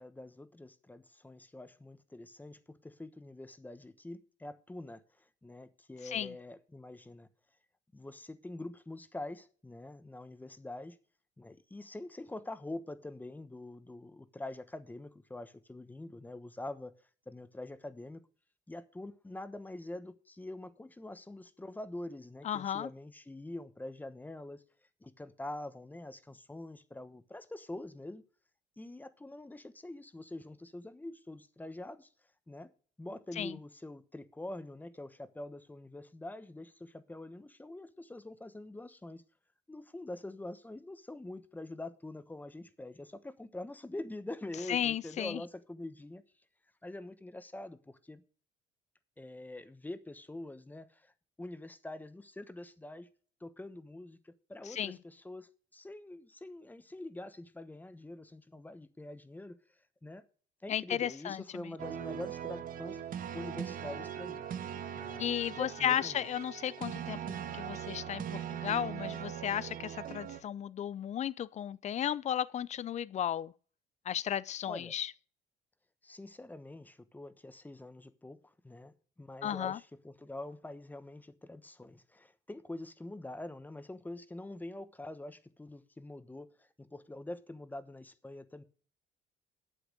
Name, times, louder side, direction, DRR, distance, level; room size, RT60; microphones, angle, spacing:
voice 1, 0.0-7.3 7.9-11.0 11.4-16.9 17.3-18.3 18.7-24.6 25.0-28.2 28.8-32.1 32.5-32.7 33.0-39.2 39.7-46.2 46.8-48.2 49.2-51.1 51.4-53.1 53.4-59.6 60.0-60.2 60.6-64.5 64.9-66.2 74.7-74.9 76.0-88.6, left 2 dB, 10° left, 1.1 m, -45 dB
voice 2, 6.0-6.3 22.4-22.9 33.4-33.5 44.7-45.4 54.7-55.0 60.7-61.7 65.2-73.5 74.1-75.1 79.4-79.8, left 10 dB, 45° left, 0.5 m, -34 dB
sound 1, 61.8-70.4, right 9 dB, 55° right, 1.5 m, -40 dB
8.5 x 8.3 x 6.7 m
cardioid pair, 110°, 17 cm